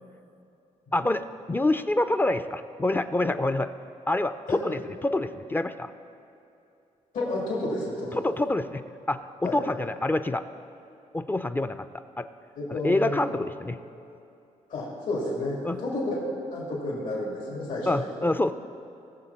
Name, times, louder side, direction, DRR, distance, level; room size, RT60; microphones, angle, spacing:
voice 1, 0.9-3.7 4.1-5.9 8.1-8.8 9.1-10.4 11.1-11.9 12.2-12.3 12.7-13.8 15.6-15.8 17.9-18.5, left 2 dB, 15° left, 10 dB, 0.4 m, -26 dB
voice 2, 7.1-8.2 9.4-9.6 12.6-13.2 14.7-16.1 16.5-18.3, left 2 dB, 75° left, -4 dB, 3.0 m, -31 dB
19.0 x 7.2 x 4.3 m, 2.7 s
cardioid pair, 100°, 13 cm